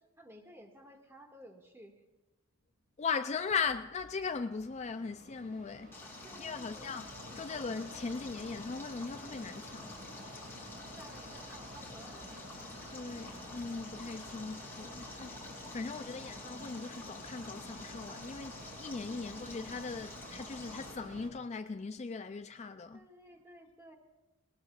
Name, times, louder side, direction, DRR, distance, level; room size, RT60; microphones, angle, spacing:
voice 1, 0.2-2.0 6.2-6.9 11.0-12.4 19.1-19.5 22.9-24.0, right 1 dB, 10° right, 2.0 m, -55 dB
voice 2, 3.0-5.9 6.4-9.9 12.9-23.0, left 5 dB, 30° left, 0.4 m, -39 dB
Mechanisms, 3.3-21.3, equal, 45° right, 6.5 m, -50 dB
Stream, 5.9-20.9, left 3 dB, 10° left, 2.6 m, -50 dB
21.5 x 19.5 x 2.5 m
head